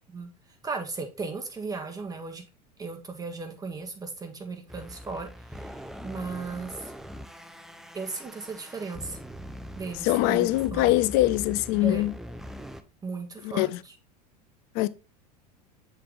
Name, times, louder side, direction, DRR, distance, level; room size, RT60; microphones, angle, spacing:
voice 1, 0.6-2.4 2.8-6.9 7.9-9.2 9.7-11.0 11.8-12.1 13.0-13.9, right 4 dB, 15° right, 1.5 m, -36 dB
sound 1, 4.7-12.8, equal, ahead, 0.6 m, -42 dB
voice 2, 10.0-12.1 13.4-13.7 14.7-14.9, left 17 dB, 50° left, 0.5 m, -23 dB
7.4 x 4.0 x 3.5 m
hypercardioid pair, 80°, 21 cm